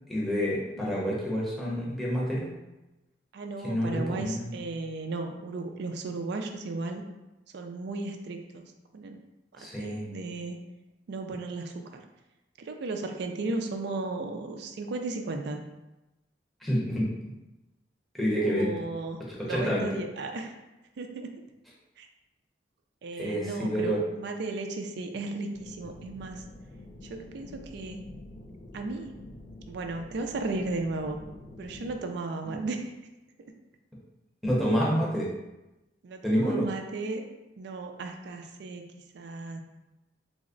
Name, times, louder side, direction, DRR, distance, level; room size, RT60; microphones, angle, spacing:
voice 1, 0.1-2.5 3.6-4.6 9.6-10.0 16.6-17.1 18.1-18.7 19.3-19.8 23.2-24.0 34.4-35.3 36.2-36.7, equal, ahead, -6 dB, 0.7 m, -28 dB
voice 2, 0.8-1.1 3.3-7.0 7.5-8.6 8.9-9.2 9.5-10.6 11.1-12.0 12.6-15.6 18.4-19.2 19.5-20.5 21.0-21.3 22.0-22.1 23.0-26.4 27.0-28.0 28.7-29.1 29.7-31.2 31.6-32.9 36.0-37.2 37.6-38.8 39.1-39.6, right 3 dB, 65° right, 4 dB, 0.4 m, -35 dB
sound 1, 25.5-32.0, left 2 dB, 35° left, 0.3 m, -47 dB
3.4 x 2.0 x 3.7 m, 1.0 s
head